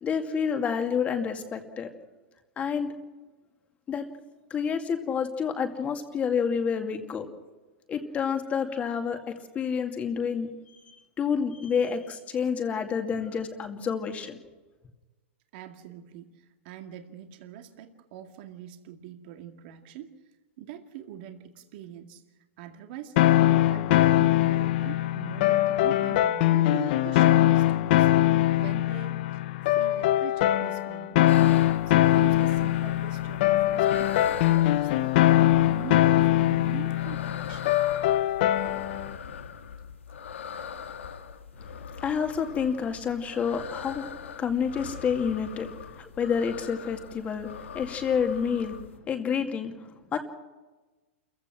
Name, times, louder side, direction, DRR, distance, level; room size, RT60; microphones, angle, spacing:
voice 1, 0.0-1.9 2.6-2.9 3.9-4.1 4.5-7.3 7.9-10.8 11.2-14.4 42.0-44.1 44.4-45.7 46.0-47.5 47.7-48.8 49.1-49.7 50.1-50.2, left 6 dB, 20° left, 5 dB, 2.3 m, -28 dB
voice 2, 15.5-20.2 20.6-22.2 22.6-23.2 23.5-29.4 29.7-31.2 31.9-35.1 35.5-37.7, right 10 dB, 50° right, 5 dB, 2.1 m, -43 dB
sound 1, 23.2-39.1, left 14 dB, 55° left, 0.7 m, -22 dB
sound 2, 31.3-49.0, left 7 dB, 85° left, 1.9 m, -41 dB
28.0 x 15.5 x 6.1 m, 1.2 s
hypercardioid pair, 135°, 7 cm